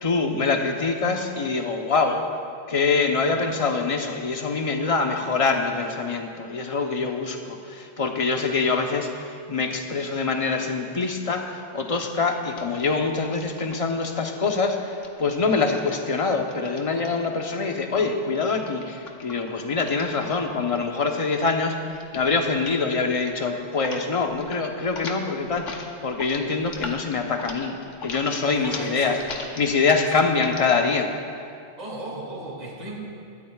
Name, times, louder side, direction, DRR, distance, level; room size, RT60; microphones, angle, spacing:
voice 1, 0.0-2.2 2.7-29.2 29.6-31.1, left 4 dB, 30° left, 3 dB, 0.9 m, -25 dB
sound 1, 12.6-14.1 14.9-17.4 18.3-20.9 21.1-21.5 21.9-22.3 22.6-22.8 23.1-24.0 24.3-24.6 24.9-30.7, left 3 dB, 80° left, 1.4 m, -40 dB
voice 2, 28.6-29.4 30.0-30.4 31.8-33.0, right 1 dB, 35° right, -5 dB, 2.6 m, -37 dB
20.0 x 13.5 x 2.4 m, 2.4 s
omnidirectional pair, 1.2 m